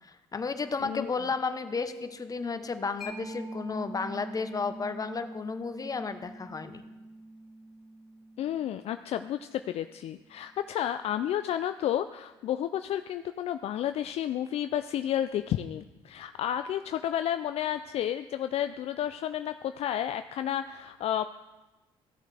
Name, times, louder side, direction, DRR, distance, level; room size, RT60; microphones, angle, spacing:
voice 1, 0.0-6.8, left 4 dB, 30° left, 9 dB, 0.9 m, -33 dB
voice 2, 0.8-1.1 8.4-21.2, left 11 dB, 55° left, 10 dB, 0.4 m, -31 dB
Mallet percussion, 3.0-10.3, right 1 dB, ahead, 2.8 m, -44 dB
15.0 x 7.1 x 3.4 m, 1.1 s
supercardioid pair, 70°, 12 cm